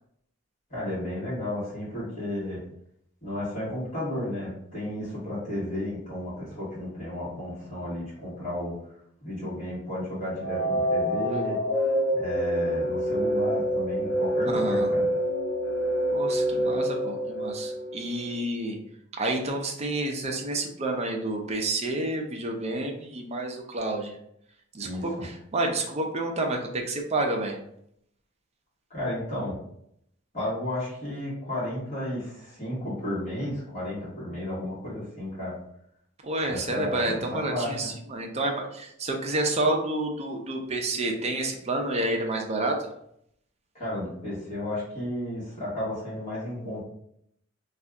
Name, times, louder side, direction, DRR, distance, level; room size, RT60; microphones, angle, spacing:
voice 1, 0.7-2.6 3.2-8.8 9.2-11.6 12.1-15.0 24.8-25.2 28.9-29.5 30.3-35.6 36.5-37.9 43.7-46.8, left 1 dB, 40° left, -9 dB, 1.4 m, -33 dB
sound 1, 10.4-18.3, equal, 85° left, 0.6 m, -27 dB
voice 2, 14.5-14.9 16.1-18.8 19.2-24.2 24.7-27.6 36.2-42.9, right 2 dB, 30° right, 1 dB, 0.5 m, -29 dB
2.6 x 2.4 x 3.4 m, 0.72 s
head